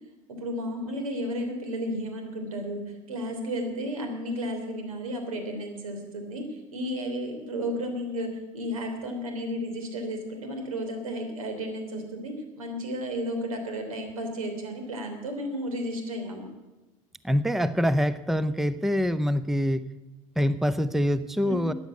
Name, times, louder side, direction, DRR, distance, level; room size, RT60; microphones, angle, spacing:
voice 1, 0.3-16.5 21.4-21.7, equal, 85° right, 4 dB, 3.2 m, -33 dB
voice 2, 17.2-19.8 20.4-21.7, equal, ahead, 14 dB, 0.6 m, -25 dB
14.0 x 9.5 x 8.3 m, 1.1 s
hypercardioid pair, 75°, 18 cm